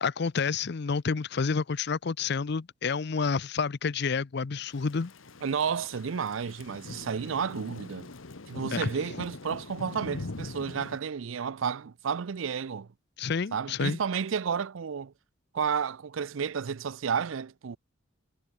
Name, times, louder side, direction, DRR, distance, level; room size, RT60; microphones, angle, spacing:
voice 1, 0.0-5.1 8.7-8.9 13.2-14.0, left 5 dB, 55° left, 0.5 m, -29 dB
Thunder / Rain, 4.7-11.0, left 2 dB, 80° left, 1.2 m, -42 dB
voice 2, 5.4-8.1 8.5-12.9 13.5-15.1 15.5-17.8, right 6 dB, 80° right, 0.5 m, -31 dB
head